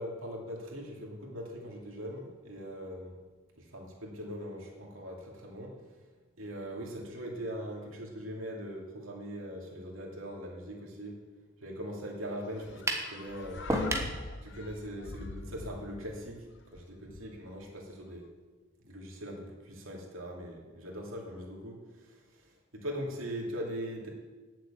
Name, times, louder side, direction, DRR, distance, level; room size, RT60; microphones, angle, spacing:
voice 1, 0.0-3.2 3.6-5.9 6.4-11.2 11.6-13.7 14.4-18.3 18.9-24.1, equal, 80° right, -1 dB, 2.7 m, -41 dB
sound 1, 12.5-17.6, left 2 dB, 60° left, 0.8 m, -44 dB
sound 2, 12.9-13.1 13.7-14.1, right 1 dB, 15° right, 1.2 m, -29 dB
9.2 x 7.6 x 8.7 m, 1.3 s
head